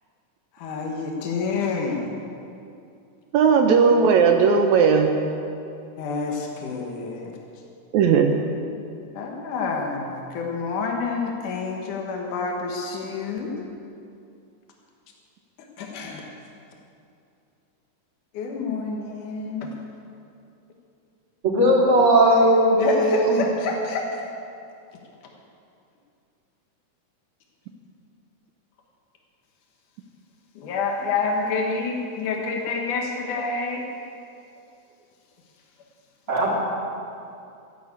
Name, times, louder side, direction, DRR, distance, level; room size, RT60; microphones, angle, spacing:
voice 1, 0.6-2.1 6.0-7.3 9.1-13.6 15.8-16.2 18.4-19.7 22.7-24.2 30.6-33.8, left 4 dB, 80° left, 0 dB, 3.0 m, -28 dB
voice 2, 3.3-5.2 7.9-8.4, right 6 dB, 75° right, 4 dB, 2.0 m, -17 dB
voice 3, 21.4-23.4 36.3-36.6, right 1 dB, 40° right, -7 dB, 4.4 m, -18 dB
13.5 x 11.5 x 8.4 m, 2.5 s
omnidirectional pair, 3.6 m